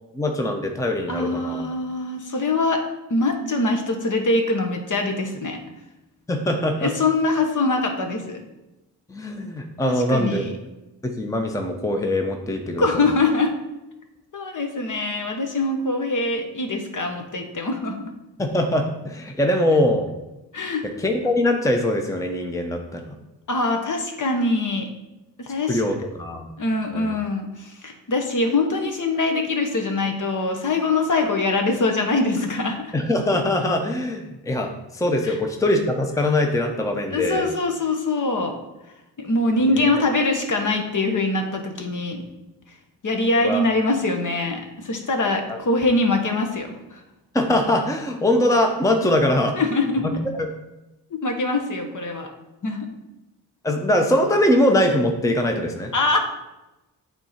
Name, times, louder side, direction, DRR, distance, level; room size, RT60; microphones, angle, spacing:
voice 1, 0.1-1.6 6.3-6.9 9.1-10.4 11.0-13.0 18.4-20.1 21.0-23.0 25.7-26.5 26.9-27.1 32.9-37.5 43.4-43.6 45.5-45.6 47.3-49.6 50.0-50.5 53.6-55.9, left 1 dB, 10° left, 3 dB, 0.7 m, -22 dB
voice 2, 1.1-2.8 3.1-5.6 6.8-8.4 9.8-10.6 12.8-13.5 14.3-18.0 20.5-20.9 23.5-24.9 25.4-25.8 26.6-32.9 35.2-35.4 37.1-38.5 39.2-42.2 43.0-47.0 49.5-50.2 51.1-52.3 52.6-52.9 55.9-56.2, left 2 dB, 50° left, 4 dB, 1.2 m, -23 dB
8.9 x 3.7 x 4.3 m, 0.99 s
cardioid pair, 80°, 41 cm